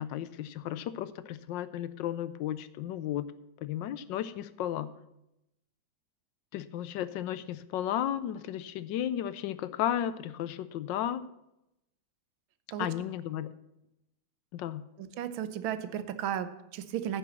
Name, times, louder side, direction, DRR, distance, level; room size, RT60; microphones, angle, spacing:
voice 1, 0.0-3.3 3.6-4.9 6.5-11.2 12.8-13.5 14.5-14.8, left 11 dB, 75° left, 15 dB, 1.2 m, -34 dB
voice 2, 15.0-17.2, right 10 dB, 90° right, 12 dB, 1.6 m, -34 dB
9.9 x 6.9 x 7.2 m, 0.87 s
omnidirectional pair, 2.1 m